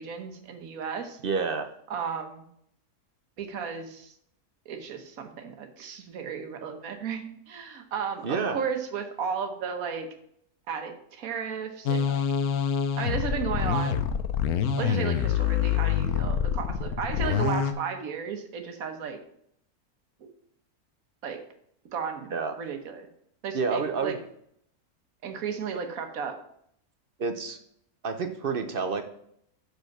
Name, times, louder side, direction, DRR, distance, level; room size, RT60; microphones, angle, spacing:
voice 1, 0.0-1.2 1.9-2.5 3.4-4.1 4.6-10.1 10.7-12.2 13.0-14.1 14.8-19.2 20.2-20.3 21.2-21.4 21.9-23.1 23.4-24.2 25.2-26.4, right 6 dB, 70° right, 6 dB, 1.4 m, -34 dB
voice 2, 1.2-1.7 8.2-8.6 22.3-22.5 23.5-24.2 27.2-27.6 28.0-29.0, right 5 dB, 50° right, 7 dB, 0.7 m, -29 dB
sound 1, 11.9-17.7, left 8 dB, 80° left, 1.1 m, -26 dB
6.3 x 5.2 x 5.9 m, 0.70 s
omnidirectional pair, 1.6 m